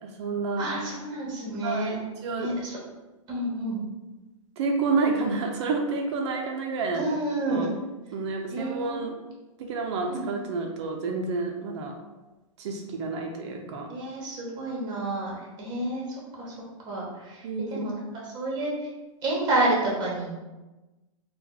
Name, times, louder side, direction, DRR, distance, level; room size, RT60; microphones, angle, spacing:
voice 1, 0.0-0.7 1.6-2.5 4.6-7.1 7.5-7.7 8.1-9.2 9.6-11.9 12.6-13.9 17.4-17.8, right 4 dB, 55° right, 2 dB, 0.5 m, -29 dB
voice 2, 0.6-2.0 2.4-2.8 3.3-3.8 6.9-7.7 8.5-9.0 10.0-10.3 13.9-16.0 16.4-16.5 16.8-17.4 17.7-18.0 18.3-18.9 19.2-20.3, right 1 dB, 25° right, -4 dB, 1.1 m, -29 dB
2.9 x 2.2 x 3.8 m, 1.1 s
hypercardioid pair, 145°, 18 cm